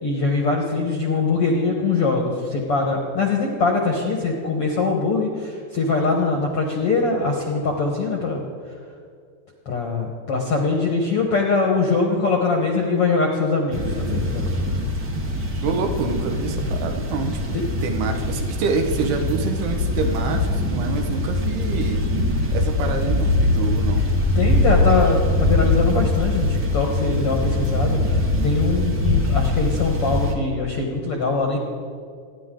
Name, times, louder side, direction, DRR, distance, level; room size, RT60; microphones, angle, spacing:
voice 1, 0.0-8.4 9.6-14.5 17.5-17.6 24.3-31.6, left 3 dB, 60° left, 0 dB, 1.5 m, -22 dB
sound 1, 13.7-30.3, left 2 dB, 45° right, 1.4 m, -22 dB
voice 2, 15.6-22.0 22.5-24.1, right 4 dB, 80° right, 4 dB, 3.4 m, -27 dB
27.0 x 11.0 x 3.9 m, 2.2 s
omnidirectional pair, 4.6 m